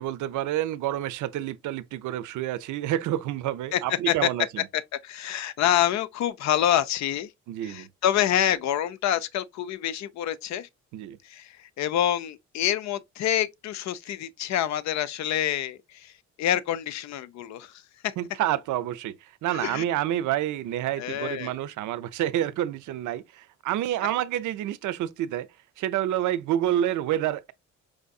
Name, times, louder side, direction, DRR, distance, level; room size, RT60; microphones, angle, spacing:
voice 1, 0.0-4.6 7.5-7.9 10.9-11.2 18.2-19.1 19.4-25.5 25.8-27.5, right 12 dB, 75° right, 0.5 m, -28 dB
voice 2, 3.7-4.3 4.7-7.3 7.6-10.7 11.2-16.1 16.4-18.1 19.5-19.8 21.0-21.5, left 11 dB, 65° left, 0.5 m, -27 dB
4.8 x 2.6 x 2.3 m
cardioid pair, 90°, 30 cm